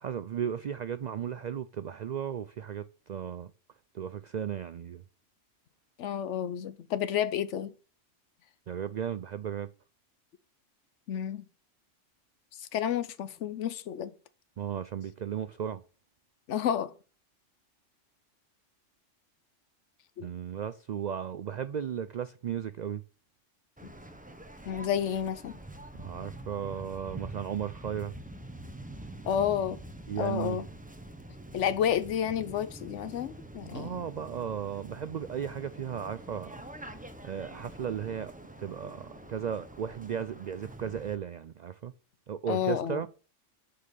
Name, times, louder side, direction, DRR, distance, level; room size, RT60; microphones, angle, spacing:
voice 1, 0.0-3.5 3.9-5.0 8.7-9.7 14.6-15.8 20.2-23.0 25.9-28.1 30.1-30.6 33.6-36.6 37.2-38.3 38.6-41.9 42.3-43.1, right 8 dB, 75° right, 0.4 m, -35 dB
voice 2, 6.0-7.7 11.1-11.5 12.7-14.1 16.5-16.9 20.2-20.3 23.8-23.9 24.7-25.5 29.2-29.8 30.2-30.6 31.5-34.0 42.5-43.0, left 9 dB, 70° left, 1.0 m, -30 dB
Waves surf, 23.8-41.1, right 1 dB, 10° right, 0.7 m, -46 dB
6.7 x 5.7 x 6.7 m
omnidirectional pair, 1.3 m